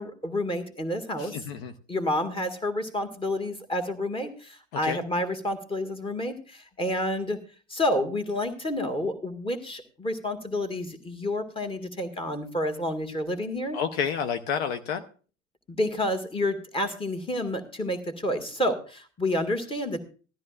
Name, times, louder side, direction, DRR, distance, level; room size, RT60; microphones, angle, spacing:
voice 1, 0.0-1.4 1.9-7.4 7.7-13.8 15.7-20.0, left 1 dB, 15° left, 8 dB, 1.8 m, -29 dB
voice 2, 1.2-1.7 4.8-5.0 13.7-15.0, left 7 dB, 55° left, 9 dB, 0.9 m, -29 dB
16.5 x 12.5 x 2.4 m, 0.38 s
figure-of-eight pair, 70°, 38 cm